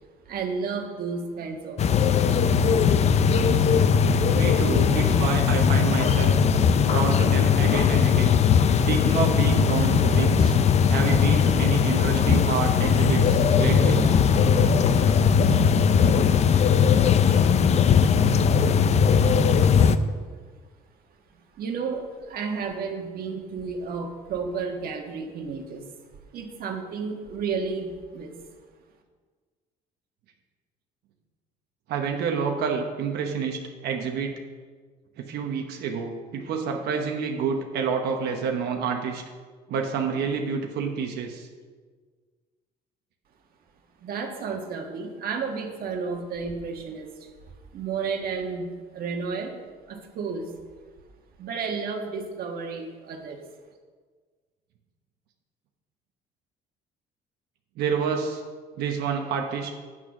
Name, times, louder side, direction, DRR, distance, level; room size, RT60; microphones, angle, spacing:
voice 1, 0.2-2.2 21.6-25.9 26.3-28.4 44.0-47.3 47.7-48.7 48.9-49.5 49.9-50.5 51.4-53.4, right 5 dB, 60° right, 3 dB, 1.5 m, -32 dB
sound 1, 1.8-20.0, left 6 dB, 40° left, 0.5 m, -19 dB
voice 2, 4.3-6.4 6.8-8.4 8.8-10.5 10.9-14.0 31.9-34.3 35.2-39.2 39.7-41.5 57.8-58.4 58.8-59.7, right 6 dB, 75° right, 2 dB, 1.1 m, -28 dB
9.1 x 6.4 x 5.9 m, 1.5 s
cardioid pair, 110°, 17 cm